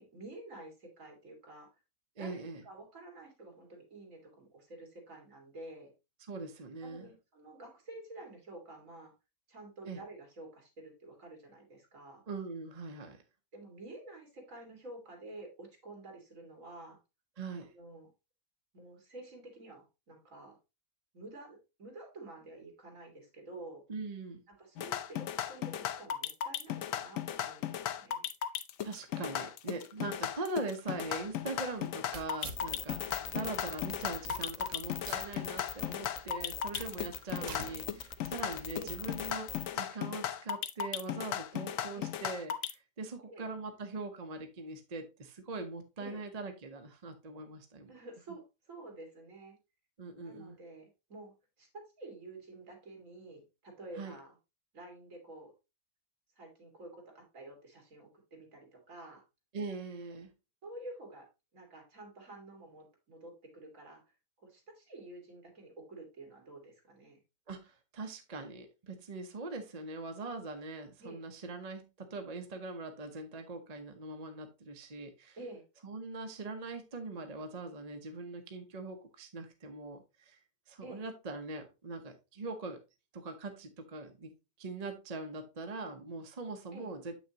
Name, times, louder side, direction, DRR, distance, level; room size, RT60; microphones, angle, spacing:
voice 1, 0.0-1.7 2.2-2.4 2.6-5.9 6.8-9.1 9.5-12.2 13.5-17.0 17.6-18.1 18.7-20.6 21.1-23.8 24.6-28.3 33.3-33.5 37.4-37.5 38.7-38.9 41.9-42.1 43.3-43.5 46.0-46.2 47.9-49.6 50.2-51.7 52.0-54.3 54.7-55.5 56.4-59.2 60.6-64.0 64.4-67.2 71.0-71.2 75.4-75.6 80.8-81.1 86.7-86.9, right 2 dB, 65° right, 1 dB, 2.7 m, -50 dB
voice 2, 2.2-2.6 6.3-7.1 9.9-10.0 12.3-13.2 17.4-17.7 23.9-24.4 28.8-47.9 50.0-50.6 54.0-54.1 59.5-60.3 67.5-75.4 75.8-80.4 80.7-82.8 83.1-84.3 84.6-87.2, right 3 dB, 35° right, 5 dB, 0.8 m, -42 dB
sound 1, 24.8-42.7, left 10 dB, 70° left, 1.0 m, -36 dB
sound 2, 30.9-33.1 33.5-33.6 34.1-34.7 35.0-36.0 36.4-38.7, right 4 dB, 85° right, 1.6 m, -49 dB
sound 3, 32.6-39.7, left 7 dB, 90° left, 0.3 m, -42 dB
7.9 x 6.1 x 2.9 m, 0.27 s
omnidirectional pair, 1.5 m